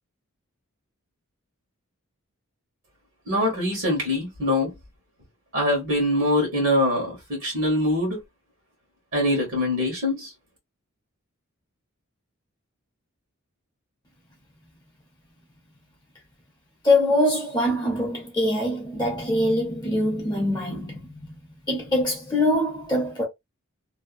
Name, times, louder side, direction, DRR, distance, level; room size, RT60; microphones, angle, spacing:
voice 1, 3.3-4.7 5.5-8.2 9.1-10.3, left 1 dB, 60° right, 1.3 m, -23 dB
voice 2, 16.8-21.3 21.7-23.2, left 1 dB, 20° left, 0.7 m, -23 dB
2.7 x 2.2 x 2.5 m
head